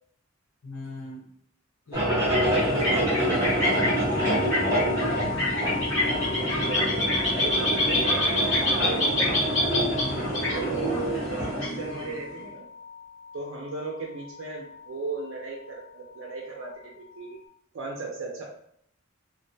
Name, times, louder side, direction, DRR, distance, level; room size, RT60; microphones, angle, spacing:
voice 1, 0.6-1.3 1.9-5.0 10.0-10.3, left 1 dB, 90° left, -3 dB, 0.8 m, -38 dB
sound 1, 1.9-11.6, right 1 dB, 15° right, 0.8 m, -28 dB
sound 2, 2.0-12.4, left 1 dB, 65° left, 1.2 m, -27 dB
sound 3, 3.4-17.5, left 6 dB, 25° left, 0.6 m, -39 dB
voice 2, 6.0-9.5 10.2-12.6 13.3-17.4 17.7-18.4, right 3 dB, 70° right, -2 dB, 0.4 m, -36 dB
2.5 x 2.1 x 2.5 m, 0.69 s
head